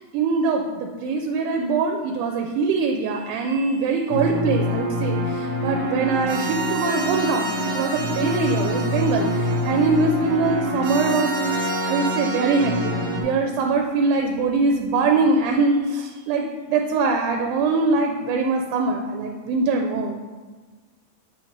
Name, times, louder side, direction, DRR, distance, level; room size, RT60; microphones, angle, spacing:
voice 1, 0.0-11.3 11.9-20.2, right 3 dB, 90° right, 3 dB, 2.1 m, -23 dB
sound 1, 4.1-13.2, equal, 65° right, 1.7 m, -25 dB
7.2 x 3.0 x 5.0 m, 1.4 s
omnidirectional pair, 3.5 m